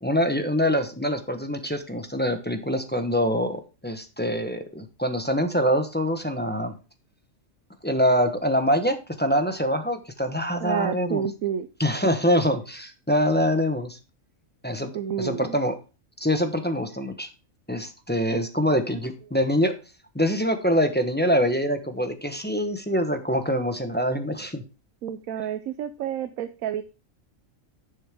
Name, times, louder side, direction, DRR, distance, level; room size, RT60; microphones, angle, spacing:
voice 1, 0.0-6.7 7.8-11.2 11.8-14.0 14.6-14.9 15.2-15.7 16.2-17.3 17.7-19.7 20.1-24.6, equal, 10° left, 7 dB, 0.8 m, -24 dB
voice 2, 10.6-11.7 14.9-15.6 25.0-26.8, right 9 dB, 80° right, 10 dB, 1.1 m, -29 dB
11.5 x 6.7 x 3.5 m, 0.32 s
omnidirectional pair, 1.4 m